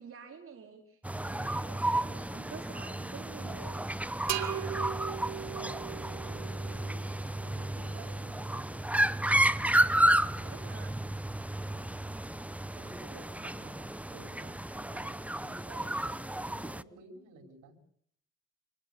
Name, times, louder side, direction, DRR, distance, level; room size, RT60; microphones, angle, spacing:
voice 1, 0.0-3.9 9.6-11.0, right 6 dB, 45° right, 2 dB, 4.7 m, -49 dB
sound 1, 1.0-16.8, right 1 dB, 5° right, 0.9 m, -32 dB
sound 2, 4.3-7.9, right 10 dB, 70° right, 2.5 m, -39 dB
voice 2, 4.6-7.0 7.3-8.9 10.1-10.6 11.6-12.0 12.3-17.8, right 3 dB, 85° right, 6 dB, 5.8 m, -53 dB
26.5 x 21.5 x 7.1 m, 0.65 s
cardioid pair, 90°, 30 cm